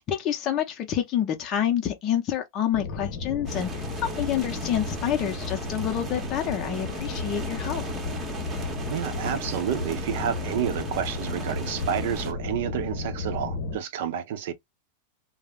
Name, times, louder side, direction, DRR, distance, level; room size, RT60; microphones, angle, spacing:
voice 1, 0.0-7.9, left 10 dB, 40° left, 0.6 m, -28 dB
sound 1, 2.7-13.8, left 4 dB, 60° left, 0.9 m, -33 dB
sound 2, 3.5-12.3, right 4 dB, 25° right, 0.8 m, -38 dB
voice 2, 8.9-14.5, right 9 dB, 65° right, 0.6 m, -30 dB
2.3 x 2.0 x 3.5 m
hypercardioid pair, 115°, 0 cm